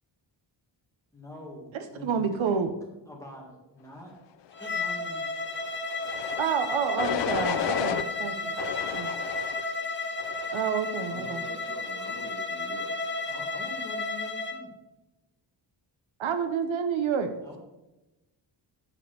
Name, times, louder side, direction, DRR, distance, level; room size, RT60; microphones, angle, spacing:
voice 1, 1.1-2.7 3.1-4.1 4.6-5.2 7.0-8.5 13.2-14.7 17.4-17.6, equal, 5° left, -2 dB, 1.8 m, -45 dB
voice 2, 2.0-2.7 6.4-8.3 8.9-9.1 10.5-11.4 16.2-17.3, right 7 dB, 80° right, 8 dB, 0.8 m, -28 dB
Bowed string instrument, 4.5-14.6, left 3 dB, 25° left, 1.0 m, -33 dB
sound 1, 6.0-6.4 7.0-8.0 8.6-9.6 10.2-10.6, left 10 dB, 65° left, 0.6 m, -32 dB
voice 3, 11.0-12.9, right 1 dB, 45° right, -1 dB, 2.4 m, -44 dB
8.3 x 5.2 x 6.5 m, 0.99 s
wide cardioid pair, 180°, 46 cm